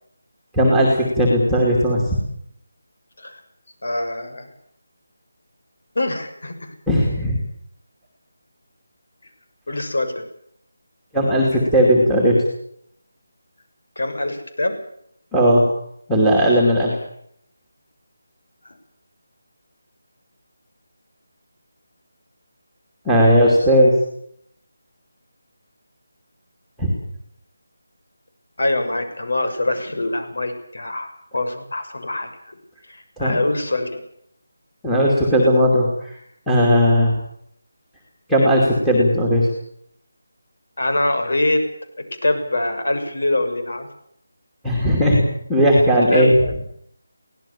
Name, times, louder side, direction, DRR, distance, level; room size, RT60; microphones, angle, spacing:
voice 1, 0.5-2.2 6.9-7.4 11.1-12.4 15.3-15.7 16.1-17.0 23.0-23.9 26.8-26.9 33.2-33.4 34.8-36.1 36.5-37.2 38.3-39.5 44.6-45.2 45.5-46.3, equal, ahead, -4 dB, 2.7 m, -16 dB
voice 2, 3.8-4.5 5.9-6.7 9.7-10.2 14.0-14.8 28.6-32.6 32.9-34.0 40.8-41.7 42.0-43.9 46.1-46.6, left 2 dB, 65° left, 8 dB, 6.6 m, -24 dB
24.0 x 18.0 x 7.3 m, 0.70 s
figure-of-eight pair, 180°, 0 cm